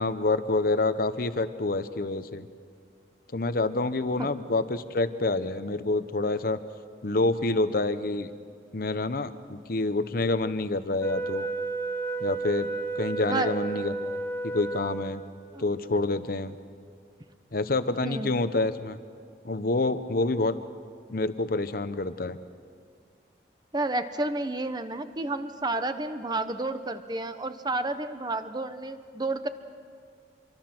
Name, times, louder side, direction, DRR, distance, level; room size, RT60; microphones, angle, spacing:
voice 1, 0.0-2.5 3.3-6.6 7.0-8.3 8.7-11.5 12.2-12.7 13.0-15.2 15.6-16.6 17.5-19.0 19.4-20.6 21.1-22.4, left 2 dB, 55° left, 11 dB, 0.9 m, -27 dB
Wind instrument woodwind instrument, 11.0-15.4, right 3 dB, 15° left, 1.2 m, -32 dB
voice 2, 23.7-29.5, right 2 dB, 25° right, 10 dB, 1.0 m, -31 dB
26.0 x 23.5 x 6.1 m, 2.1 s
head